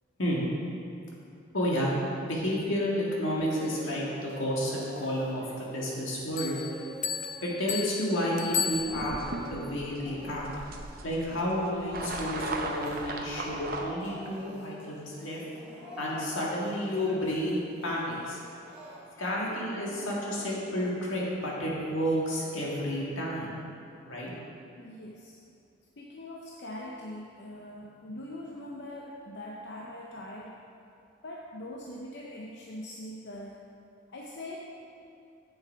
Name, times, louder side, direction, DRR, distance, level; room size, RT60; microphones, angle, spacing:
voice 1, 1.5-1.9 2.2-6.6 7.4-9.2 9.5-10.4 11.0-18.5 18.8-23.6 24.0-24.3, equal, 80° left, -4 dB, 1.9 m, -31 dB
Speech / Crying sobbing, 3.4-4.4 4.7-11.3 11.6-13.0 13.3-19.5, left 2 dB, 5° right, 2.1 m, -47 dB
sound 1, 6.4-9.4, left 7 dB, 40° left, 0.3 m, -34 dB
sound 2, 8.7-13.8, right 2 dB, 50° right, 0.7 m, -38 dB
voice 2, 24.8-25.4 26.0-30.6 31.2-33.6 34.1-34.6, left 1 dB, 55° left, -2 dB, 0.7 m, -42 dB
8.0 x 6.8 x 4.6 m, 2.7 s
head